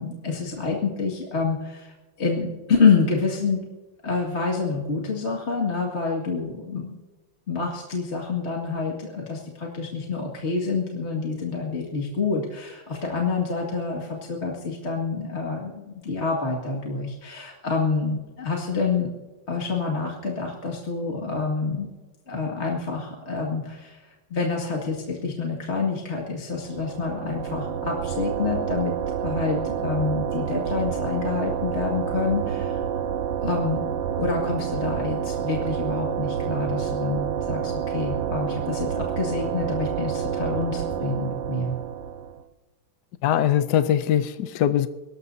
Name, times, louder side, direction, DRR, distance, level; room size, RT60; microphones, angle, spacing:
voice 1, 0.0-3.7 4.0-7.0 7.5-19.1 19.5-21.9 22.3-28.9 29.2-32.9 33.4-33.9 34.2-41.8, left 4 dB, 35° left, -1 dB, 2.2 m, -27 dB
sound 1, 26.6-42.4, right 8 dB, 65° right, 1.4 m, -28 dB
voice 2, 43.2-44.9, left 10 dB, 70° left, 11 dB, 1.1 m, -21 dB
23.5 x 19.0 x 2.7 m, 1.2 s
omnidirectional pair, 2.1 m